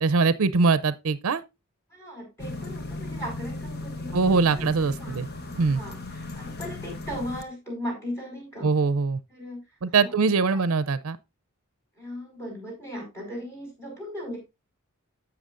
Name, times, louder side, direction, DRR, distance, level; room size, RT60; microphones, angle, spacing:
voice 1, 0.0-1.4 4.1-5.3 5.6-5.8 8.6-9.2 9.8-11.2, right 4 dB, 75° right, 0.5 m, -22 dB
voice 2, 1.9-4.2 4.5-4.6 5.0-5.2 5.6-8.7 9.3-9.6 10.0-10.2 10.5-10.7 12.0-14.4, equal, 15° left, 4.7 m, -37 dB
sound 1, 2.4-7.4, left 2 dB, 45° left, 0.9 m, -36 dB
16.0 x 5.9 x 2.5 m
head